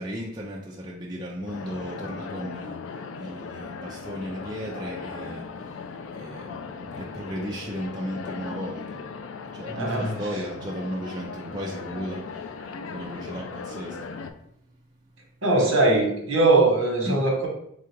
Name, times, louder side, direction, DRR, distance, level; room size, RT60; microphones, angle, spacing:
voice 1, 0.0-9.1 9.5-14.1 17.0-17.2, equal, 20° right, -3 dB, 0.4 m, -35 dB
sound 1, 1.5-14.3, left 5 dB, 60° left, 0.3 m, -38 dB
voice 2, 9.7-10.1 15.4-17.5, right 2 dB, 60° right, 0 dB, 1.1 m, -21 dB
3.6 x 2.4 x 4.5 m, 0.72 s
head